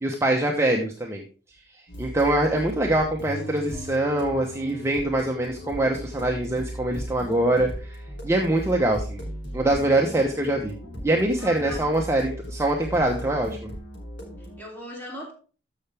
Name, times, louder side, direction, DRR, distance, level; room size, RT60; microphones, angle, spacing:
voice 1, 0.0-1.2 2.0-8.0 8.2-9.2 9.5-10.7 11.0-13.5, right 1 dB, 15° right, 0.9 m, -23 dB
sound 1, 1.9-14.6, equal, 85° left, 3.3 m, -37 dB
voice 2, 11.3-11.9 12.9-13.4 14.4-15.3, equal, 10° left, 3.1 m, -39 dB
13.5 x 5.7 x 3.4 m
head